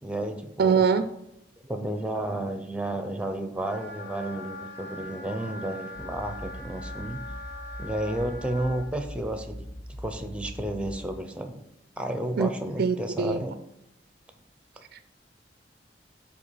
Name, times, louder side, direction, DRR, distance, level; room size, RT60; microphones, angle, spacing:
voice 1, 0.0-0.8 1.6-7.2 7.8-9.7 10.0-11.6 12.0-13.5, right 1 dB, 5° right, 7 dB, 0.6 m, -32 dB
voice 2, 0.6-1.1 12.4-12.5 12.8-13.4 14.9-15.0, right 5 dB, 55° right, 10 dB, 0.4 m, -23 dB
Wind instrument woodwind instrument, 3.6-8.8, left 2 dB, 90° left, 2.0 m, -42 dB
sound 1, 6.0-10.9, equal, 35° left, 2.6 m, -41 dB
7.8 x 2.9 x 5.7 m, 0.84 s
head